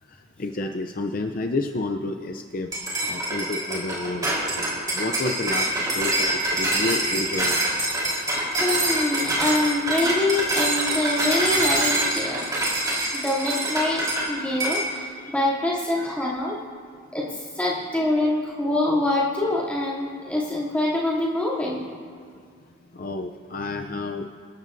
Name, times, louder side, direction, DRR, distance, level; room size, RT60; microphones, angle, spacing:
voice 1, 0.1-2.7 3.0-7.6 8.2-8.3 15.2-15.3 15.6-15.8 16.2-16.3 22.9-24.3, left 2 dB, 45° left, 5 dB, 0.5 m, -30 dB
sound 1, 2.7-14.3 14.6-14.9, right 1 dB, 20° right, 3.8 m, -25 dB
voice 2, 8.6-12.4 13.1-16.6 17.1-17.3 17.5-21.8, left 2 dB, 5° left, -7 dB, 2.8 m, -25 dB
25.5 x 14.0 x 2.6 m, 2.1 s
head